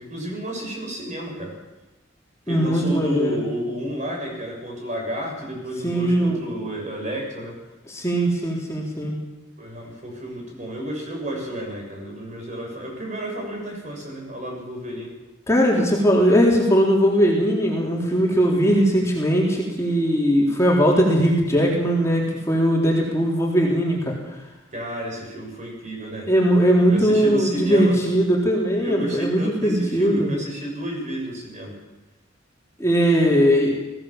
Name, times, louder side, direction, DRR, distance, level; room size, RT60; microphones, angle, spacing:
voice 1, 0.0-1.6 2.5-7.6 9.6-15.1 24.7-26.3 26.9-28.0 28.7-31.7, right 1 dB, 40° right, 0 dB, 6.9 m, -31 dB
voice 2, 2.5-3.4 5.8-6.4 7.9-9.1 15.5-24.2 26.3-30.3 32.8-33.8, equal, 15° left, -3 dB, 3.8 m, -19 dB
21.5 x 16.5 x 7.4 m, 1.1 s
head